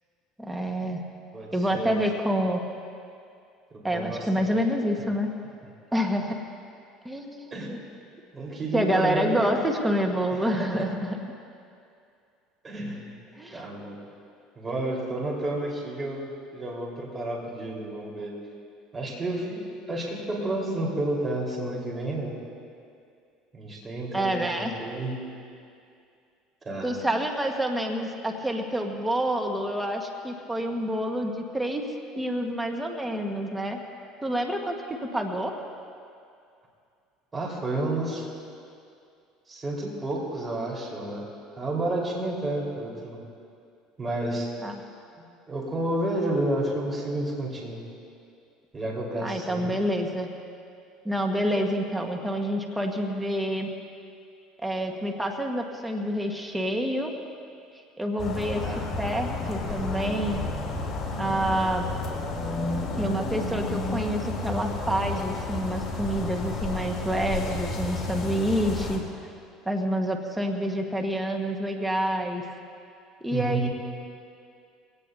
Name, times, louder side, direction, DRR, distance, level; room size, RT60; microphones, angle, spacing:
voice 1, 0.4-1.0 1.5-2.6 3.8-5.3 5.9-6.3 7.0-7.8 8.7-11.2 13.3-13.6 24.1-24.7 26.8-33.8 34.2-35.5 44.6-44.8 49.2-50.3 51.0-53.7 54.6-57.1 58.0-58.6 59.0-60.4 61.2-61.9 63.0-69.0 69.6-72.4 73.2-73.7, equal, 10° right, 2 dB, 1.6 m, -28 dB
voice 2, 1.3-2.0 3.9-4.5 7.5-7.7 8.3-9.5 10.4-10.9 12.6-13.1 13.5-14.0 14.6-18.3 18.9-22.3 23.5-25.2 26.6-26.9 37.3-38.3 39.5-41.3 41.6-43.2 44.0-44.5 45.5-47.8 48.7-49.7 58.6-58.9 73.3-73.7, right 1 dB, 25° right, -2 dB, 4.4 m, -30 dB
Breezy city amb, 58.2-69.0, left 2 dB, 25° left, 3.8 m, -31 dB
24.0 x 17.5 x 2.8 m, 2.4 s
supercardioid pair, 95°, 0 cm